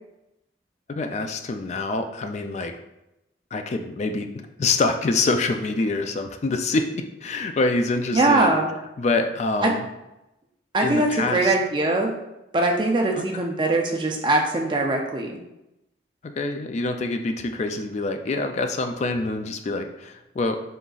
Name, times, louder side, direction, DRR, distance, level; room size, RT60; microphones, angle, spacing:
voice 1, 0.9-2.7 3.5-4.3 4.6-8.5 9.0-9.8 10.8-11.5 13.2-13.4 16.2-20.6, left 3 dB, 40° left, 6 dB, 0.3 m, -26 dB
voice 2, 8.1-8.7 9.6-9.7 10.7-12.1 12.5-15.4, right 2 dB, 25° right, 1 dB, 0.5 m, -21 dB
3.9 x 3.8 x 2.4 m, 0.91 s
head